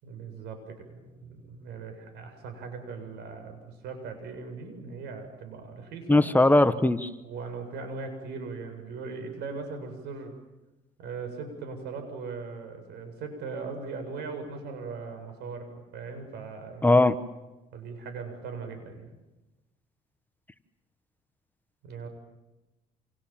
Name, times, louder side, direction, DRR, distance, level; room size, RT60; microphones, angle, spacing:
voice 1, 0.0-6.2 7.2-10.3 11.0-17.0 17.7-19.1 21.8-22.1, right 4 dB, 80° right, 7 dB, 7.4 m, -39 dB
voice 2, 6.1-7.1 16.8-17.1, left 2 dB, 10° left, 11 dB, 1.1 m, -19 dB
29.0 x 27.5 x 7.4 m, 1.0 s
cardioid pair, 110°, 17 cm